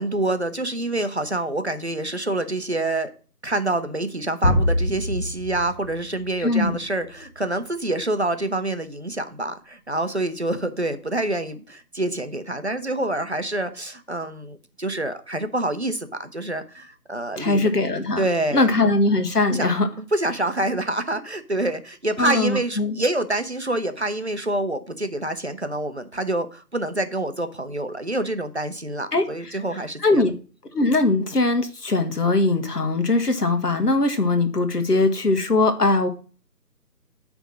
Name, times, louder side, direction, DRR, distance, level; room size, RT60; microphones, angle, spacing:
voice 1, 0.0-3.1 3.4-17.7 18.2-18.7 19.5-30.3, right 1 dB, 45° right, 9 dB, 0.6 m, -27 dB
sound 1, 4.4-7.4, left 1 dB, 50° left, 4.7 m, -25 dB
voice 2, 6.4-6.8 17.4-18.2 18.5-19.9 22.2-23.0 29.1-29.3 30.0-30.3 30.7-36.1, left 2 dB, 70° left, 6 dB, 1.6 m, -21 dB
8.8 x 3.5 x 6.0 m, 0.38 s
figure-of-eight pair, 175°, 49 cm